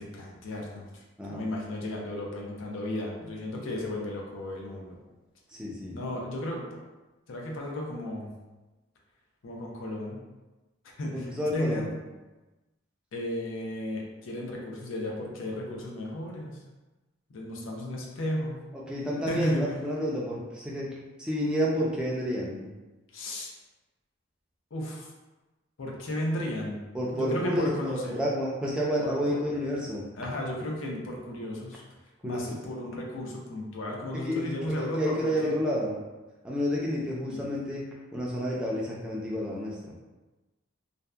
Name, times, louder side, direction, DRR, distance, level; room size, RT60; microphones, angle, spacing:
voice 1, 0.0-5.0 5.9-6.7 7.3-8.3 9.4-10.2 11.0-11.8 13.1-16.6 17.3-18.6 19.3-19.8 23.1-23.5 24.7-25.1 25.8-26.8 27.1-28.2 29.0-29.4 30.1-31.8 32.2-35.5 37.2-37.4, left 1 dB, 75° left, -1 dB, 0.5 m, -34 dB
voice 2, 5.5-5.9 11.1-11.8 18.9-22.7 26.9-27.7 28.1-30.1 32.2-32.6 34.1-36.0 36.4-37.8 38.1-39.9, equal, 5° right, -5 dB, 0.3 m, -30 dB
2.6 x 2.1 x 2.3 m, 1.1 s
head